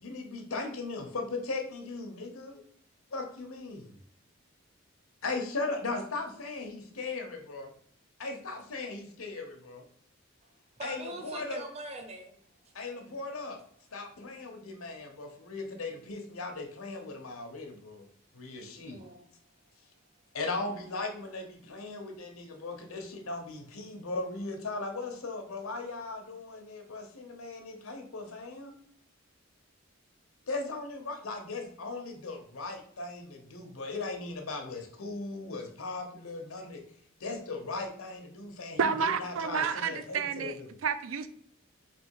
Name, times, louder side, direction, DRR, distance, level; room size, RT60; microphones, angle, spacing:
voice 1, 0.0-2.6 3.1-4.0 5.2-7.7 8.2-9.8 10.8-11.6 12.7-13.6 13.9-18.0 18.3-19.0 20.3-28.7 30.5-36.8 37.2-40.7, left 3 dB, 90° left, 0.9 m, -38 dB
voice 2, 10.8-12.4 18.9-19.3, right 2 dB, 30° right, 0.7 m, -42 dB
voice 3, 38.8-41.3, right 6 dB, 75° right, 0.4 m, -30 dB
3.4 x 2.9 x 4.6 m
head